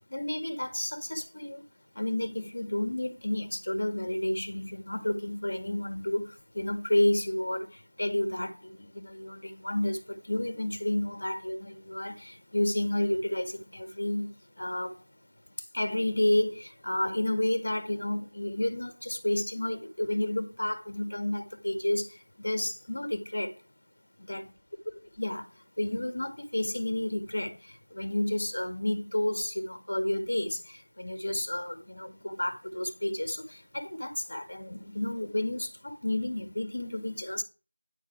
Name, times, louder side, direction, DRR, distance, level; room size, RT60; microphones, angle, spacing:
voice 1, 0.1-1.6 2.0-6.3 6.5-14.3 14.6-14.9 15.7-23.5 24.3-24.5 25.2-25.5 25.8-37.4, left 1 dB, 50° left, 1.9 m, -31 dB
10.5 x 7.2 x 4.5 m
figure-of-eight pair, 175°, 0 cm